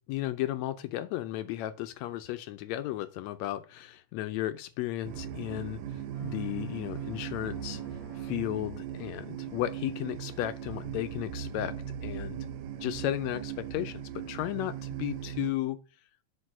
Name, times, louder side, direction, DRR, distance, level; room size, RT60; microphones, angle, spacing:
voice 1, 0.1-7.8 8.2-11.8 12.0-12.4 12.8-15.8, left 14 dB, 80° left, 1.7 m, -34 dB
sound 1, 5.0-15.5, right 10 dB, 75° right, 2.0 m, -39 dB
Boat Water vehicle, 6.1-8.8, left 5 dB, 55° left, 2.1 m, -53 dB
6.5 x 4.8 x 5.9 m
omnidirectional pair, 3.3 m